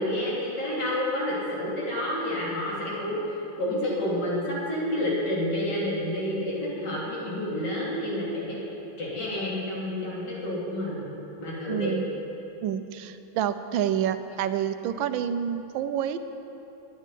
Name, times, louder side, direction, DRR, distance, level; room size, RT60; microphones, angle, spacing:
voice 1, 0.0-3.2 3.6-8.6 9.0-11.1 11.4-12.0, left 1 dB, 55° left, -6 dB, 3.8 m, -29 dB
voice 2, 11.7-12.0 12.6-16.2, right 9 dB, 75° right, 11 dB, 1.3 m, -28 dB
10.5 x 8.3 x 9.9 m, 3.0 s
omnidirectional pair, 2.2 m